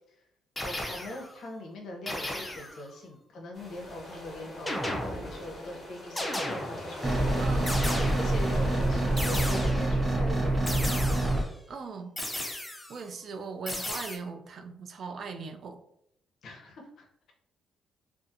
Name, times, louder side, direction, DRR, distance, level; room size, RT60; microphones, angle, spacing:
voice 1, 0.6-7.4 8.1-10.9 16.4-17.3, left 1 dB, 65° left, 1 dB, 0.6 m, -42 dB
sound 1, 0.6-1.4 2.1-2.9 4.7-5.5 6.2-7.0 7.7-8.5 9.2-10.0 10.7-11.5 12.2-13.0 13.7-14.2, left 1 dB, 10° left, 0.4 m, -35 dB
sound 2, 3.5-9.7, left 1 dB, 40° left, 1.0 m, -40 dB
sound 3, 7.0-11.4, right 1 dB, 20° right, 0.8 m, -26 dB
voice 2, 7.4-7.8 11.7-12.1 12.9-15.8, right 4 dB, 55° right, 6 dB, 0.3 m, -39 dB
2.5 x 2.4 x 2.6 m, 0.75 s
cardioid pair, 90°, 0 cm